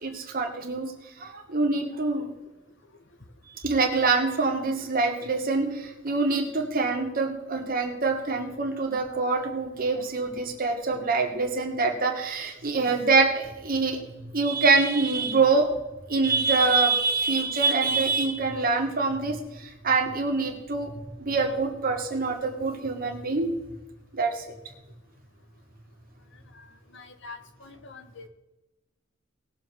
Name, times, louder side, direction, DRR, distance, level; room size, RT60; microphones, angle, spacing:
voice 1, 0.0-0.9 1.2-2.3 3.6-14.0 14.3-15.7 16.1-20.9 21.3-23.5 24.1-24.4, right 4 dB, 50° right, 2 dB, 2.2 m, -25 dB
voice 2, 26.9-28.3, left 4 dB, 65° left, 7 dB, 1.5 m, -45 dB
19.5 x 7.1 x 4.7 m, 1.0 s
head